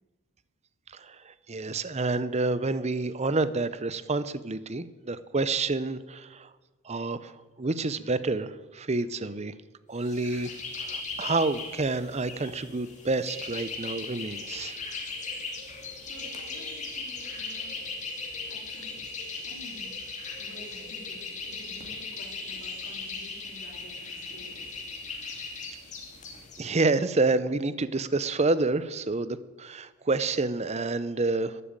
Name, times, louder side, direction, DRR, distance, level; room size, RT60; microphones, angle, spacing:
voice 1, 0.9-6.5 6.8-9.5 9.9-10.5 10.8-14.8 26.6-31.6, right 3 dB, 30° right, 15 dB, 0.7 m, -28 dB
sound 1, 10.0-26.7, left 3 dB, 35° left, 2.5 m, -38 dB
voice 2, 16.0-17.8 18.3-19.1 19.4-20.0 20.4-24.9, left 1 dB, 55° left, 0 dB, 3.8 m, -50 dB
12.5 x 11.0 x 8.9 m, 1.2 s
head